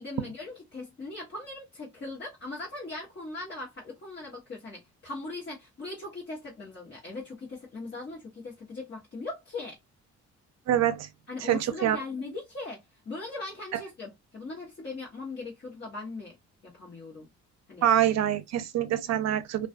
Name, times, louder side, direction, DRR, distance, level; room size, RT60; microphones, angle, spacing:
voice 1, 0.0-9.8 11.3-16.3 16.6-17.3 17.7-17.9, left 3 dB, 35° left, 1.1 m, -39 dB
voice 2, 10.7-11.1 11.4-12.0 17.8-19.7, right 11 dB, 60° right, 0.5 m, -25 dB
2.4 x 2.3 x 2.4 m
cardioid pair, 90°, 30 cm